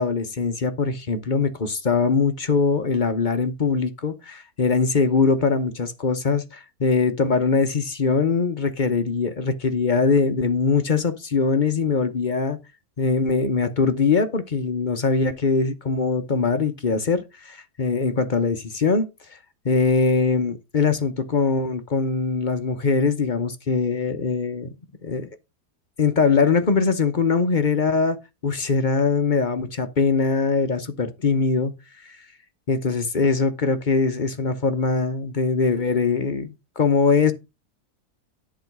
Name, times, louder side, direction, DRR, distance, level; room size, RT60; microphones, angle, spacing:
voice 1, 0.0-12.6 13.0-19.1 19.6-24.7 25.0-25.3 26.0-31.7 32.0-32.2 32.7-37.3, left 4 dB, 40° left, 0.8 m, -22 dB
11.0 x 3.9 x 5.9 m
omnidirectional pair, 1.8 m